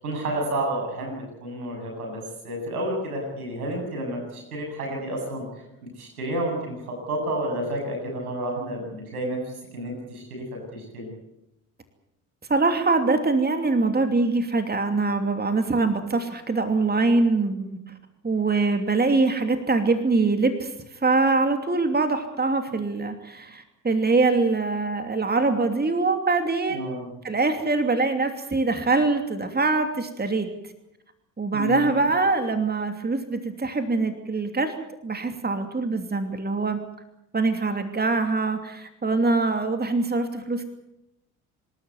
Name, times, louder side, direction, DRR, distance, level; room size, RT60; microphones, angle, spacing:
voice 1, 0.0-5.4 6.0-9.4 9.7-10.4 10.7-11.1 26.7-27.1 31.5-32.0, right 1 dB, 90° right, 1 dB, 7.8 m, -30 dB
voice 2, 12.5-17.8 18.2-20.7 21.0-30.5 31.4-34.7 35.0-36.8 37.3-40.6, right 3 dB, 20° right, 7 dB, 2.9 m, -23 dB
27.0 x 13.0 x 9.4 m, 0.87 s
hypercardioid pair, 55°, 43 cm